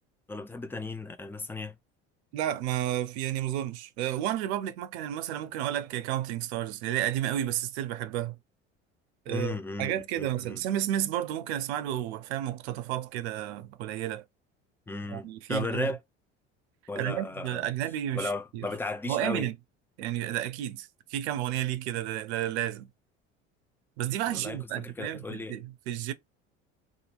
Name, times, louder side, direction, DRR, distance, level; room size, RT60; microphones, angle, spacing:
voice 1, 0.3-1.7 9.3-10.6 14.9-16.0 16.9-17.7 18.1-19.5 24.3-25.6, left 3 dB, 5° left, 0.4 m, -35 dB
voice 2, 2.3-8.4 9.3-14.2 15.1-15.9 16.9-18.7 19.1-19.5 20.0-22.9 24.0-26.1, right 12 dB, 70° right, 0.5 m, -32 dB
2.7 x 2.6 x 2.4 m
hypercardioid pair, 65°, 35 cm